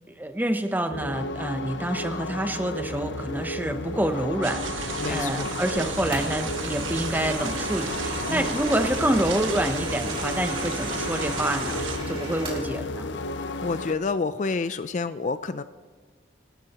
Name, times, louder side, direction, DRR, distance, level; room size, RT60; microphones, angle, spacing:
voice 1, 0.1-13.1, right 1 dB, 10° right, 8 dB, 0.7 m, -28 dB
sound 1, 0.9-13.9, left 2 dB, 70° left, 0.7 m, -33 dB
sound 2, 4.4-12.0, right 4 dB, 85° right, 1.6 m, -33 dB
voice 2, 5.0-5.5 8.3-8.5 13.6-15.6, left 4 dB, 40° left, 12 dB, 0.4 m, -28 dB
sound 3, 6.1-12.7, right 1 dB, 30° right, 4.1 m, -37 dB
28.5 x 13.0 x 3.0 m, 1.5 s
head